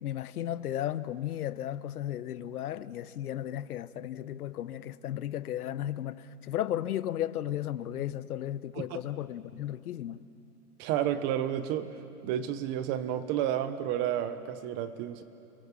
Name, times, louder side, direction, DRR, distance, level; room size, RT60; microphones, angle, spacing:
voice 1, 0.0-10.2, left 11 dB, 75° left, 1.0 m, -34 dB
voice 2, 10.8-11.9 12.2-15.2, right 10 dB, 25° right, 0.9 m, -31 dB
29.0 x 21.0 x 7.5 m
hypercardioid pair, 155°, 45 cm